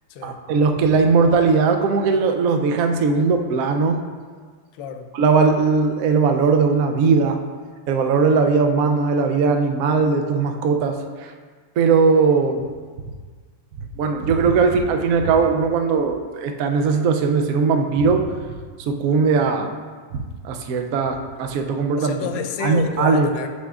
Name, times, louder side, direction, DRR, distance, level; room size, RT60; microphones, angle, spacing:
voice 1, 0.2-4.0 5.1-7.4 7.9-11.3 11.8-12.7 14.0-18.3 18.9-19.7 20.1-22.3 22.6-23.3, right 4 dB, 85° right, 5 dB, 0.7 m, -19 dB
voice 2, 4.8-5.1 22.0-23.5, left 6 dB, 75° left, 5 dB, 1.2 m, -29 dB
9.9 x 4.8 x 2.4 m, 1.6 s
omnidirectional pair, 2.1 m